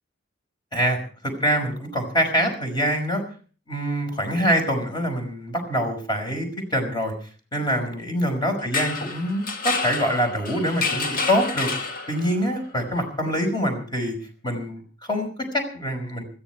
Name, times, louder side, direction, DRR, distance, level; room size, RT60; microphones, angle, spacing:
voice 1, 1.2-3.2 3.7-7.1 7.5-11.7 12.1-14.2 14.4-16.3, equal, 25° left, 4 dB, 5.4 m, -25 dB
sound 1, 8.6-12.5, left 4 dB, 50° left, 1.8 m, -29 dB
21.0 x 14.5 x 4.7 m, 0.41 s
head